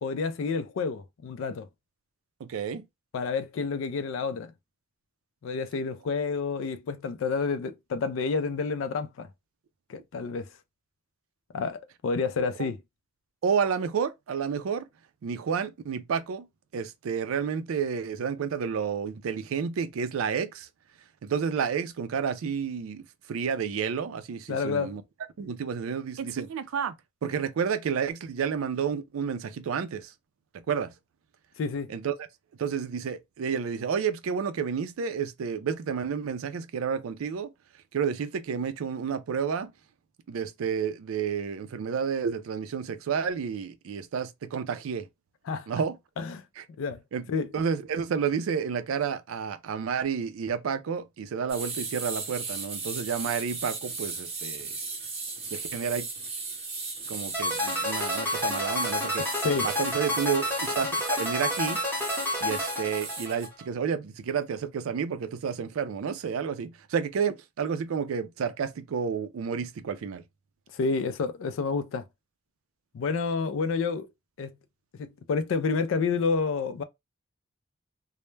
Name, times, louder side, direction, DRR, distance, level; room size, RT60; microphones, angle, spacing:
voice 1, 0.0-1.7 3.1-4.5 5.4-9.3 9.9-10.5 11.5-12.8 24.5-24.9 31.6-31.9 45.5-45.7 46.2-46.4 46.8-47.0 47.3-47.5 59.4-59.7 70.7-72.0 72.9-74.1 74.4-74.5 74.9-76.8, left 4 dB, 75° left, 0.3 m, -29 dB
voice 2, 2.4-2.9 13.4-14.8 15.2-16.5 16.7-20.7 21.2-23.0 23.3-25.0 25.4-26.9 27.2-30.1 30.7-30.9 31.9-32.1 32.6-37.5 37.9-39.7 40.3-45.1 45.7-46.0 46.6-46.7 47.1-47.3 47.5-54.7 55.5-56.1 57.1-59.3 59.6-61.8 62.4-70.2, right 6 dB, 85° right, 0.4 m, -30 dB
sound 1, 51.5-63.5, right 4 dB, 30° right, 0.7 m, -37 dB
sound 2, 57.3-63.6, left 1 dB, 10° left, 0.7 m, -29 dB
2.1 x 2.0 x 3.1 m
head